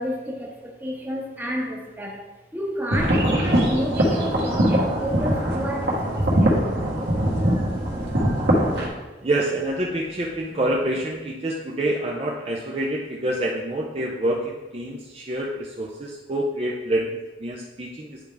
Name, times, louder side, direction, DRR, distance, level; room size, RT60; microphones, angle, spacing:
voice 1, 0.0-2.2 2.5-6.6 9.9-10.0, equal, 10° right, -1 dB, 0.9 m, -30 dB
sound 1, 2.9-8.9, right 1 dB, 80° right, 1.6 m, -22 dB
voice 2, 9.2-18.2, right 1 dB, 35° right, -1 dB, 0.5 m, -27 dB
9.9 x 3.5 x 3.4 m, 1.1 s
head